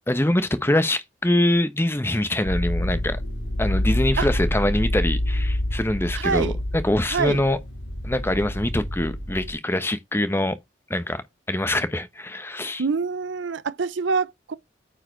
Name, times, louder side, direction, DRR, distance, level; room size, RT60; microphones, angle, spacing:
voice 1, 0.1-3.2 3.6-7.6 8.0-10.6 10.9-11.2 11.5-12.8, left 1 dB, 15° left, 1.0 m, -24 dB
sound 1, 2.4-9.5, left 1 dB, 70° left, 4.5 m, -27 dB
voice 2, 6.1-6.6 7.1-7.4 12.8-14.5, right 5 dB, 85° right, 0.6 m, -25 dB
9.3 x 4.7 x 4.4 m
head